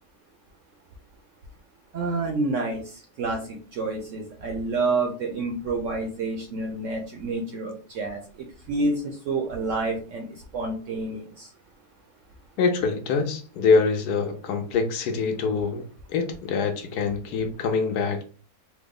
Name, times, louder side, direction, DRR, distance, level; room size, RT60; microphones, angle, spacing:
voice 1, 1.9-8.2 8.7-10.3 10.5-11.5, right 3 dB, 70° right, 2 dB, 0.7 m, -28 dB
voice 2, 12.6-15.8 16.1-18.2, left 4 dB, 75° left, 6 dB, 1.1 m, -24 dB
3.4 x 2.0 x 3.6 m, 0.39 s
omnidirectional pair, 1.8 m